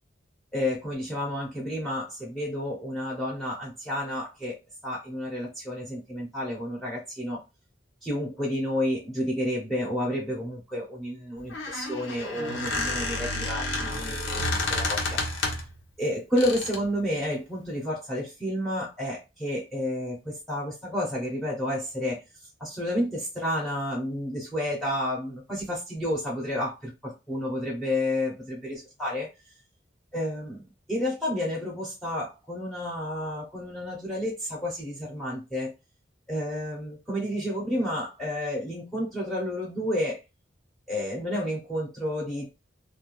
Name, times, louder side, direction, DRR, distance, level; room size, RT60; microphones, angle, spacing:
voice 1, 0.5-4.6 4.8-7.4 8.0-15.5 16.0-22.2 22.6-29.3 30.1-35.7 36.3-40.2 40.9-42.5, left 1 dB, ahead, -5 dB, 0.6 m, -30 dB
Squeak, 11.4-15.8 16.4-16.9, left 2 dB, 85° left, 0.7 m, -30 dB
2.4 x 2.2 x 3.0 m, 0.25 s
head